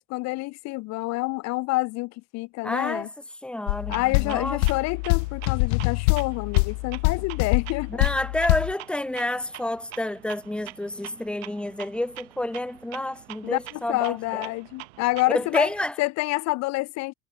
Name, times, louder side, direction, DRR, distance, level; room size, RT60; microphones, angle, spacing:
voice 1, 0.1-3.1 3.9-8.1 13.4-15.7 16.0-17.1, left 22 dB, 60° left, 1.7 m, -28 dB
voice 2, 2.6-3.1 3.4-4.0 4.3-4.6 7.9-14.2 15.3-15.9, left 1 dB, 5° left, 2.3 m, -29 dB
sound 1, 3.7-8.7, left 31 dB, 75° left, 3.9 m, -25 dB
Clock, 3.9-15.9, right 25 dB, 80° right, 6.0 m, -45 dB
supercardioid pair, 135°, 31 cm